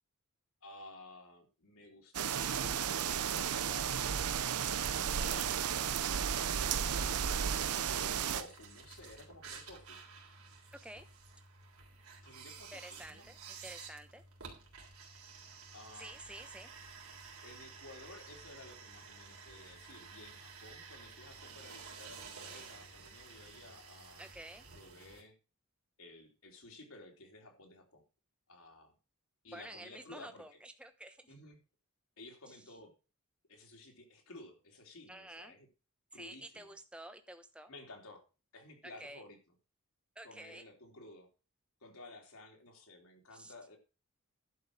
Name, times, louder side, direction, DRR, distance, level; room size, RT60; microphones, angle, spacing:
voice 1, 0.6-4.4 5.2-5.4 6.9-10.0 12.2-13.4 15.7-16.1 17.4-24.3 24.7-25.3 26.0-28.0 28.5-29.0 29.4-30.6 31.3-31.6 32.2-32.9 33.5-35.7 36.1-36.8 37.7-38.2 38.5-39.4 40.2-41.3 41.8-43.8, left 2 dB, 70° left, 1 dB, 3.2 m, -54 dB
sound 1, 2.1-8.4, right 8 dB, 85° right, 0.7 m, -33 dB
voice 2, 5.0-5.5 10.8-11.1 12.7-14.2 16.0-16.7 24.2-24.6 29.5-31.3 32.5-32.6 35.1-35.5 36.1-37.7 38.8-39.2 40.1-40.6 43.3-43.5, right 1 dB, 5° right, 8 dB, 1.0 m, -50 dB
sound 2, 8.1-25.2, right 5 dB, 70° right, 3.4 m, -52 dB
11.5 x 5.5 x 6.3 m, 0.32 s
head